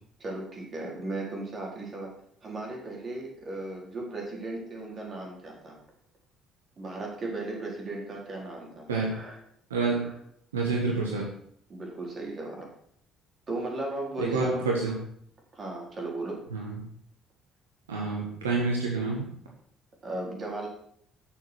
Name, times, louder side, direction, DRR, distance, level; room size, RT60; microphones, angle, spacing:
voice 1, 0.2-2.1 2.4-5.8 6.8-9.4 10.0-10.1 11.7-12.7 13.5-14.7 15.5-16.4 20.0-20.7, right 2 dB, 40° right, -1 dB, 4.3 m, -36 dB
voice 2, 9.7-10.1 10.5-11.3 14.2-15.0 16.5-16.8 17.9-19.3, right 3 dB, 85° right, -1 dB, 1.4 m, -28 dB
9.6 x 6.7 x 6.4 m, 0.67 s
figure-of-eight pair, 50°, 0 cm